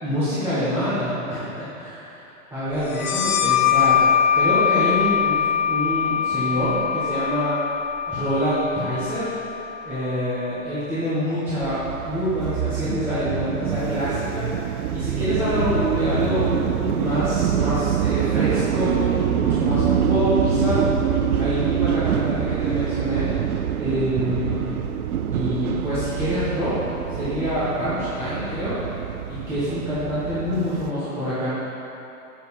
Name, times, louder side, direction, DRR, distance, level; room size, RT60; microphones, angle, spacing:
voice 1, 0.0-2.2 2.5-4.0 4.3-5.4 5.7-7.6 8.1-9.3 9.8-16.5 16.9-20.8 21.4-23.3 23.8-24.8 25.3-26.8 27.1-28.8 29.3-31.5, equal, 5° right, -13 dB, 1.0 m, -26 dB
sound 1, 2.9-10.2, left 8 dB, 65° left, 1.2 m, -22 dB
sound 2, 11.6-30.9, right 9 dB, 75° right, 0.7 m, -25 dB
sound 3, 14.9-18.2 19.4-22.6, left 3 dB, 85° left, 1.8 m, -30 dB
7.3 x 6.1 x 6.9 m, 3.0 s
hypercardioid pair, 165°, 45 cm